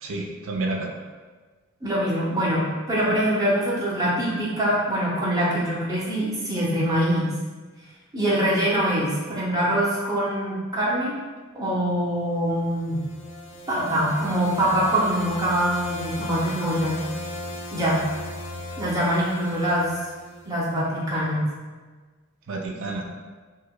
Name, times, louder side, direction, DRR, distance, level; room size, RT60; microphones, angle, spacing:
voice 1, 0.0-0.9 22.5-23.1, right 2 dB, 60° right, 1 dB, 0.4 m, -29 dB
voice 2, 1.8-7.3 8.1-11.2 11.5-13.0 13.7-17.0 17.7-18.0 18.8-19.9 20.5-21.5, equal, 15° right, -6 dB, 0.6 m, -24 dB
sound 1, 12.6-20.7, left 2 dB, 55° left, 0.3 m, -37 dB
4.7 x 2.1 x 2.3 m, 1.4 s
head